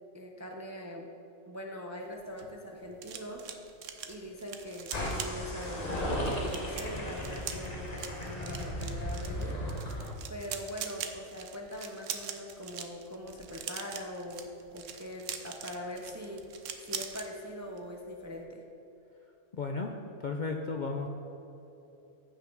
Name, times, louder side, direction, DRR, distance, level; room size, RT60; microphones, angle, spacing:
voice 1, 0.1-1.1 1.5-3.5 4.1-9.6 10.3-16.4 16.8-18.6, left 1 dB, 20° right, 1 dB, 0.5 m, -42 dB
sound 1, 2.1-17.3 17.6-17.9 18.1-18.4, right 8 dB, 70° right, 1.1 m, -43 dB
sound 2, 4.9-10.1, equal, 30° left, 1.2 m, -35 dB
voice 2, 19.5-19.9 20.2-21.1, left 4 dB, 50° left, 2 dB, 0.6 m, -34 dB
15.0 x 5.8 x 3.9 m, 3.0 s
omnidirectional pair, 1.4 m